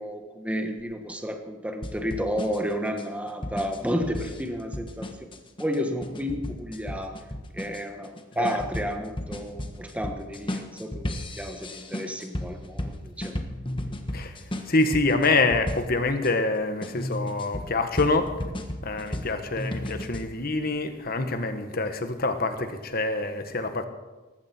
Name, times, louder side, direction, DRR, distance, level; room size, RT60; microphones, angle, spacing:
voice 1, 0.0-5.1 5.6-7.2 7.5-13.4, equal, 5° right, 1.3 m, -31 dB
sound 1, 1.8-16.3 16.8-20.3, left 1 dB, 25° left, 1.3 m, -35 dB
voice 2, 14.7-18.3 18.8-23.8, left 3 dB, 50° left, 1.5 m, -26 dB
19.0 x 15.5 x 4.5 m
head